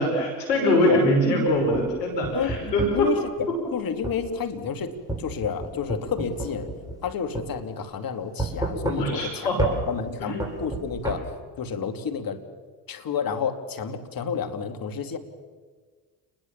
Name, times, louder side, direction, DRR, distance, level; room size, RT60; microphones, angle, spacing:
voice 1, 0.0-3.1 8.9-9.6 10.2-10.3, left 1 dB, 90° left, 2 dB, 6.0 m, -23 dB
sound 1, 1.6-3.1 4.0-4.2 5.1-7.1 7.4-7.5 8.4-9.3 9.6-9.8 10.4-11.2, right 2 dB, 5° right, 7.8 m, -30 dB
voice 2, 2.9-6.7 7.0-9.5 9.9-11.3 11.6-12.4 12.9-15.2, left 7 dB, 45° left, 7 dB, 3.0 m, -30 dB
29.0 x 21.0 x 7.4 m, 1.5 s
hypercardioid pair, 65°, 47 cm